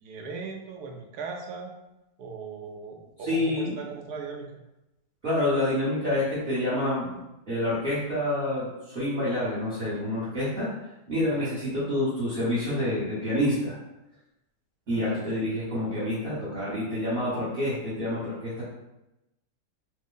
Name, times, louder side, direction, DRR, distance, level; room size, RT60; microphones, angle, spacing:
voice 1, 0.0-1.7 2.2-4.5 11.3-11.5 14.9-15.5, right 4 dB, 85° right, 2 dB, 1.2 m, -39 dB
voice 2, 3.3-3.7 5.2-7.1 7.5-10.7 11.1-13.7 14.9-18.6, left 1 dB, 40° right, -11 dB, 1.1 m, -27 dB
3.3 x 2.0 x 3.7 m, 0.93 s
omnidirectional pair, 1.7 m